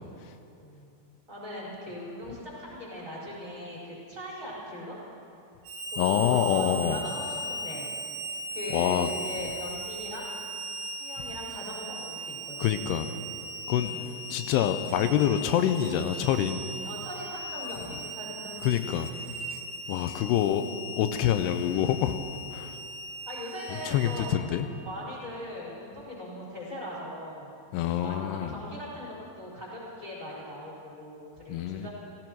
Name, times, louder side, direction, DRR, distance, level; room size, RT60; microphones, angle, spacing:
voice 1, 0.6-0.9 1.3-5.0 5.9-8.0 8.3-10.3 10.9-12.9 13.8-14.3 16.8-18.7 23.3-24.3 24.8-27.5 28.0-31.9, left 1 dB, 20° right, -7 dB, 4.4 m, -40 dB
Harmonica, 5.6-24.4, right 1 dB, 70° right, 3.2 m, -38 dB
voice 2, 6.0-7.0 8.7-9.1 12.6-13.1 13.7-13.9 14.3-16.6 18.6-19.1 19.9-20.6 21.0-22.2 22.5-22.8 23.9-24.7 27.7-28.5 31.5-31.9, left 10 dB, 85° left, 8 dB, 2.7 m, -26 dB
16.5 x 16.0 x 4.6 m, 2.7 s
omnidirectional pair, 4.7 m